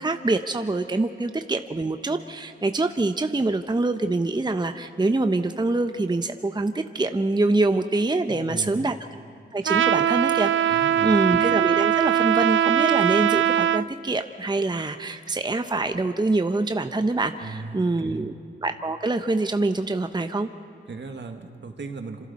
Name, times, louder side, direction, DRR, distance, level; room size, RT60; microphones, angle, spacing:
voice 1, 0.0-8.9 9.5-18.3 18.6-20.5, right 2 dB, 20° right, 8 dB, 0.8 m, -25 dB
voice 2, 8.3-8.8 10.7-11.1 17.4-18.3 20.9-22.3, right 4 dB, 65° right, 5 dB, 1.8 m, -37 dB
Trumpet, 9.7-13.9, right 10 dB, 85° right, 0.5 m, -21 dB
26.5 x 26.5 x 4.2 m, 2.4 s
cardioid pair, 55°, 20 cm